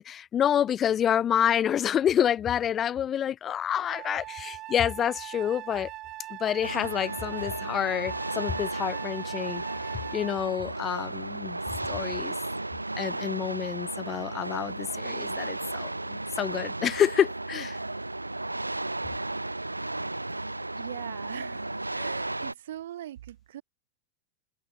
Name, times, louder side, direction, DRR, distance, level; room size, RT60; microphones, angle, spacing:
voice 1, 0.0-5.9 6.3-9.6 10.1-12.3 13.0-17.8, left 9 dB, 25° left, 2.5 m, -28 dB
Wind instrument woodwind instrument, 3.9-10.7, right 16 dB, 35° right, 7.0 m, -42 dB
sound 1, 6.6-22.5, right 2 dB, 85° right, 5.8 m, -34 dB
voice 2, 20.5-23.6, right 12 dB, 60° right, 6.2 m, -42 dB
open air
figure-of-eight pair, 90°, 0 cm